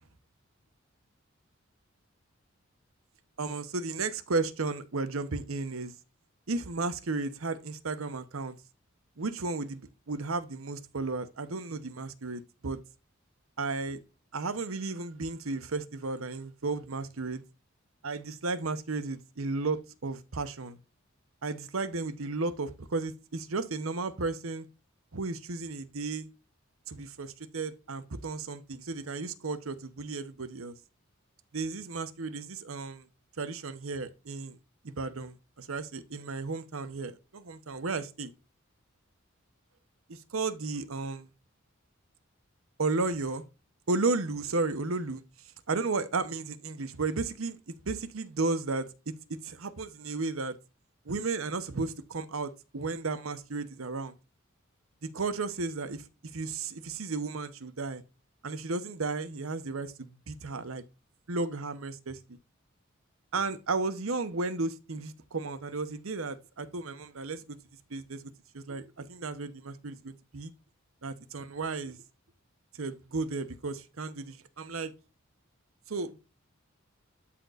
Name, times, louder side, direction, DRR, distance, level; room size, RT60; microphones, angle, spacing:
voice 1, 3.4-5.9 6.5-8.6 9.2-12.8 13.6-14.0 14.3-17.4 18.0-20.8 21.4-24.7 25.1-26.3 26.9-30.7 31.5-33.1 33.4-34.6 34.8-38.3 40.1-41.3 42.8-43.4 43.9-45.2 45.7-47.6 47.9-49.1 49.4-50.5 51.1-54.1 55.0-56.0 56.3-58.0 58.4-60.8 61.3-62.4 63.3-67.6 67.9-68.3 68.5-70.5 71.0-72.0 72.8-74.9 75.9-76.2, right 3 dB, 90° right, 0.9 m, -34 dB
13.0 x 4.4 x 2.5 m
head